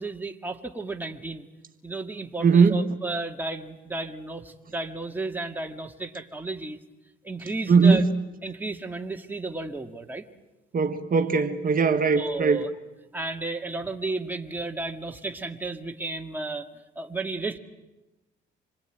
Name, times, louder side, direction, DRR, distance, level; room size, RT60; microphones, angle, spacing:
voice 1, 0.0-1.5 1.8-6.8 7.2-8.0 8.4-10.3 12.1-12.7 13.1-16.7 17.0-17.6, right 3 dB, 10° right, 3 dB, 2.1 m, -33 dB
voice 2, 2.4-2.8 7.7-8.1 10.7-12.6, right 5 dB, 45° right, 6 dB, 1.7 m, -20 dB
26.5 x 20.5 x 9.2 m, 1.1 s
cardioid pair, 90°, 20 cm